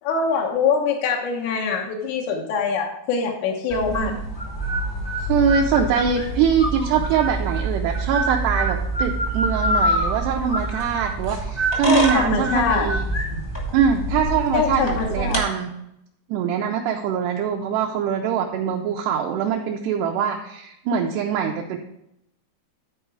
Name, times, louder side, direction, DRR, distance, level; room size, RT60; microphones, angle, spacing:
voice 1, 0.0-4.1 11.9-12.9 14.5-15.4, left 5 dB, 80° left, 0 dB, 1.7 m, -23 dB
sound 1, 3.7-15.4, right 1 dB, 35° left, 0.8 m, -26 dB
voice 2, 4.0-4.4 5.3-13.1 13.7-15.7 16.3-21.8, right 7 dB, 80° right, 1 dB, 2.4 m, -23 dB
12.0 x 4.6 x 4.7 m, 0.80 s
omnidirectional pair, 5.3 m